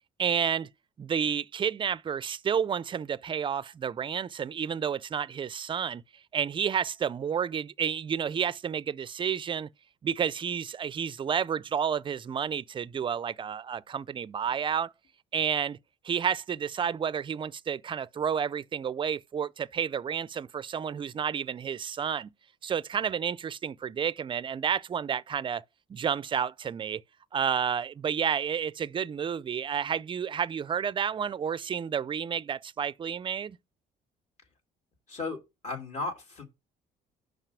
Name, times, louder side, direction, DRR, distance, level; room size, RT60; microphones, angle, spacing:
voice 1, 0.2-0.7 1.0-6.0 6.3-9.7 10.0-14.9 15.3-15.8 16.0-22.3 22.6-25.6 25.9-27.0 27.3-33.6, right 7 dB, 30° right, 0.4 m, -30 dB
voice 2, 35.1-35.4 35.6-36.4, left 3 dB, 45° left, 2.9 m, -34 dB
5.8 x 5.3 x 6.8 m
cardioid pair, 110°, 17 cm